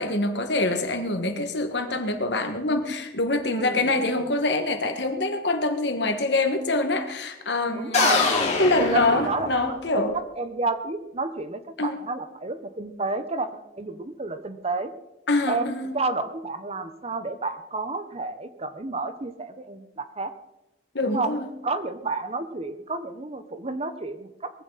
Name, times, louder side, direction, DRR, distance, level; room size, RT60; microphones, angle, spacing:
voice 1, 0.0-8.3 8.6-10.1 11.8-12.0 15.3-15.9 20.9-21.5, left 2 dB, 70° left, 1.9 m, -25 dB
voice 2, 3.5-4.1 7.7-8.5 8.8-9.5 9.9-14.9 15.5-20.3 21.0-21.3 21.6-24.5, right 3 dB, 35° right, 1.1 m, -30 dB
sound 1, 7.9-9.9, left 4 dB, 40° left, 3.8 m, -24 dB
21.0 x 15.0 x 4.2 m
head